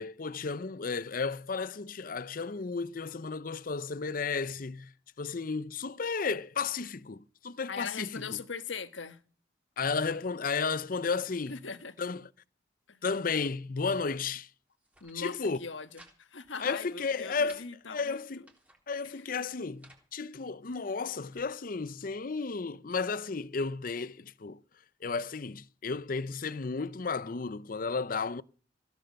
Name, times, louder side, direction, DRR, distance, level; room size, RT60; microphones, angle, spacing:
voice 1, 0.0-8.2 9.8-11.6 12.0-12.3 13.0-14.5 15.1-15.6 16.6-17.6 17.9-18.4 18.9-24.6 25.0-28.4, left 4 dB, 45° left, 0.6 m, -33 dB
voice 2, 7.7-9.2 11.5-11.9 12.9-13.0 15.0-18.5 19.0-19.3, left 5 dB, 80° left, 1.4 m, -41 dB
sound 1, 14.7-15.2 15.5-16.2 16.4-16.5 16.9-17.6 18.2-18.8 19.5-20.1 20.7-21.5, right 1 dB, 10° right, 3.6 m, -59 dB
16.5 x 8.9 x 6.5 m
head